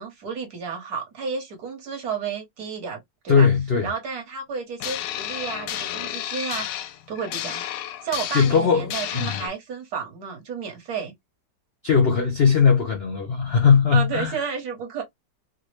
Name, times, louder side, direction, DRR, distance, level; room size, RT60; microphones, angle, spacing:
voice 1, 0.0-3.0 3.2-3.5 3.8-6.6 7.1-7.7 8.0-11.1 13.9-15.0, right 6 dB, 65° right, 1.5 m, -31 dB
voice 2, 3.3-3.9 8.3-8.9 9.1-9.4 11.8-14.3, left 6 dB, 60° left, 0.6 m, -19 dB
sound 1, 4.8-9.5, left 11 dB, 85° left, 1.2 m, -32 dB
3.6 x 2.0 x 3.1 m
omnidirectional pair, 1.9 m